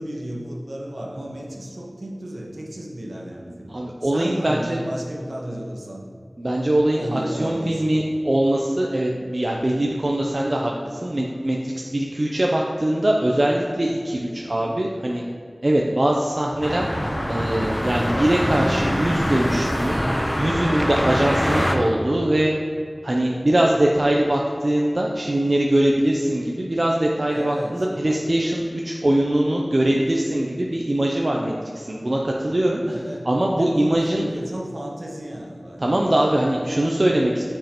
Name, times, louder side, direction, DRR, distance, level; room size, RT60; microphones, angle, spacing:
voice 1, 0.0-3.7 4.0-6.0 6.9-8.0 27.3-27.9 32.8-36.0, right 1 dB, 70° right, -2 dB, 1.2 m, -33 dB
voice 2, 3.7-4.8 6.4-15.2 15.6-16.9 17.3-20.0 20.4-22.5 23.0-33.0 33.3-34.2 35.8-37.4, right 1 dB, 50° right, -1 dB, 0.6 m, -22 dB
sound 1, 16.6-21.8, equal, 15° left, 0.7 m, -24 dB
8.9 x 5.4 x 3.0 m, 2.3 s
wide cardioid pair, 55°, 0 cm